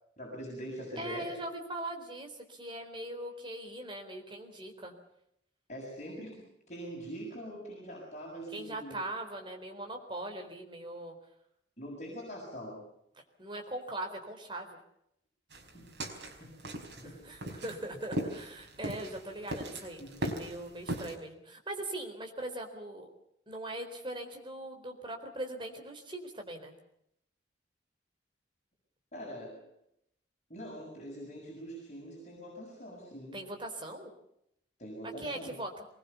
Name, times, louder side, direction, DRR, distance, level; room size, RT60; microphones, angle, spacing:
voice 1, 0.2-1.4 5.7-9.0 11.8-12.9 15.7-15.9 16.4-17.2 20.0-20.1 29.1-29.7 30.5-33.4 34.8-35.5, equal, 40° left, -3 dB, 7.1 m, -43 dB
voice 2, 1.0-4.9 8.5-11.1 13.2-14.8 17.0-23.1 23.5-26.7 33.3-34.1 35.0-35.9, right 1 dB, 25° right, 3 dB, 4.1 m, -41 dB
sound 1, 15.5-21.2, right 1 dB, 70° right, 4.7 m, -38 dB
23.5 x 20.5 x 7.1 m, 0.76 s
head